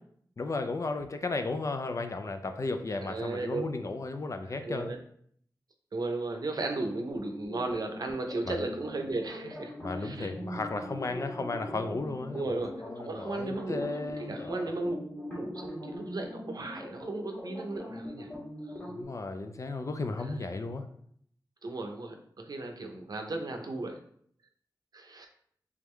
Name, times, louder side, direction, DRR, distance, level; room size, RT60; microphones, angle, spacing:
voice 1, 0.4-4.9 8.5-8.6 9.8-12.6 12.8-14.7 18.9-20.9, left 3 dB, 45° left, 7 dB, 0.4 m, -34 dB
voice 2, 3.0-3.7 4.4-5.0 5.9-9.7 10.0-10.3 12.3-13.9 14.2-15.0 15.3-18.3 18.6-18.7 20.2-20.5 21.6-24.0 24.9-25.3, right 2 dB, 60° right, 4 dB, 0.6 m, -35 dB
sound 1, 7.1-19.0, equal, 25° left, 1.4 m, -42 dB
3.5 x 3.5 x 3.2 m, 0.64 s
wide cardioid pair, 90°, 7 cm